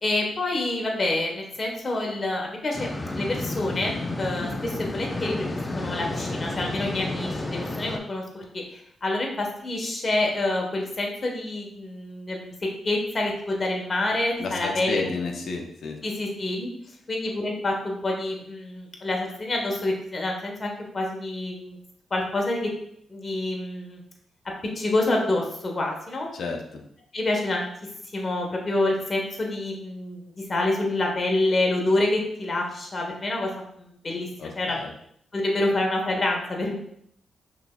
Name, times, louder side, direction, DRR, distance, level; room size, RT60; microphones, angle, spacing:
voice 1, 0.0-2.9 3.2-12.5 12.8-15.2 16.0-16.7 17.1-21.8 22.1-22.7 23.1-24.0 24.7-26.3 27.1-27.7 28.1-34.8 35.3-36.8, left 2 dB, 40° left, 0 dB, 1.3 m, -27 dB
sound 1, 2.7-8.0, left 2 dB, 25° left, 0.6 m, -31 dB
voice 2, 14.4-16.0 26.3-26.6 34.4-34.9, left 4 dB, 65° left, 3 dB, 0.7 m, -31 dB
5.8 x 3.4 x 2.4 m, 0.70 s
supercardioid pair, 50°, 0 cm